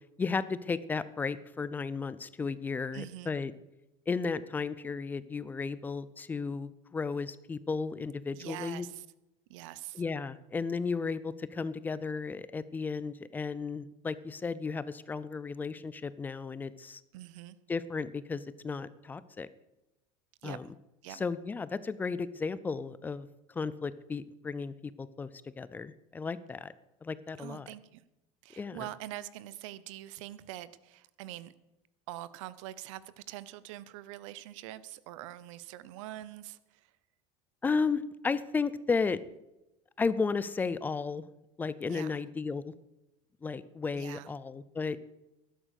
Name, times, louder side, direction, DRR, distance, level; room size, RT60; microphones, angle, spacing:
voice 1, 0.2-3.5 4.1-8.9 9.9-17.0 17.7-19.5 20.4-20.7 21.1-25.3 25.6-26.7 27.0-27.7 28.6-28.9 37.6-39.2 40.0-41.3 41.6-42.7 43.4-45.0, left 4 dB, 10° left, 16 dB, 0.4 m, -34 dB
voice 2, 2.9-3.3 8.3-9.1 9.5-10.0 17.1-17.6 20.4-20.6 21.0-21.2 27.4-28.0 28.4-31.5 32.1-36.9 41.9-42.2 43.9-44.3, right 14 dB, 85° right, 17 dB, 0.9 m, -44 dB
13.0 x 11.0 x 6.5 m, 0.93 s
cardioid pair, 170°, 16 cm